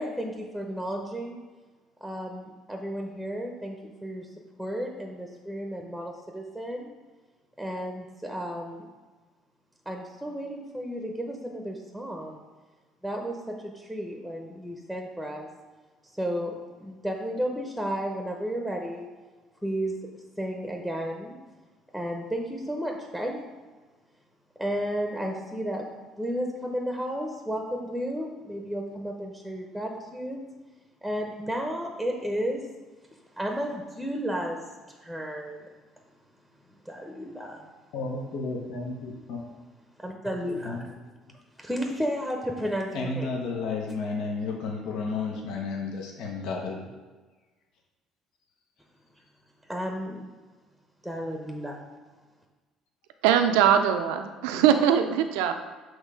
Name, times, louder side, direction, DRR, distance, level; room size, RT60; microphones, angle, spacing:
voice 1, 0.0-1.4 2.0-4.3 4.6-6.9 7.6-8.8 9.9-12.4 13.0-15.5 16.2-19.1 19.6-19.9 20.4-21.4 21.9-23.4 24.6-25.8 26.2-30.4 31.0-32.7 33.4-34.6 34.9-35.7 36.8-37.7 40.0-40.8 41.6-43.3 49.7-50.2 51.0-51.8, equal, ahead, 2 dB, 0.8 m, -33 dB
voice 2, 37.9-39.4 40.6-40.8 42.9-46.9, left 4 dB, 70° left, 0 dB, 0.9 m, -32 dB
voice 3, 53.2-55.5, right 9 dB, 80° right, 8 dB, 0.4 m, -21 dB
6.5 x 3.1 x 4.9 m, 1.3 s
hypercardioid pair, 65°, 0 cm